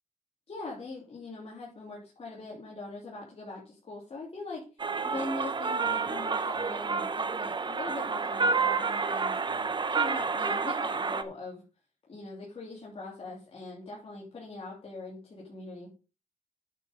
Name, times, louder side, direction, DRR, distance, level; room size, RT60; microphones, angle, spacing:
voice 1, 0.5-4.6 4.9-9.4 9.9-11.6 12.1-15.9, left 2 dB, 45° left, -5 dB, 3.0 m, -41 dB
sound 1, 4.8-11.2, right 4 dB, 35° right, 0.8 m, -29 dB
9.1 x 5.9 x 5.2 m, 0.33 s
wide cardioid pair, 110°, 14 cm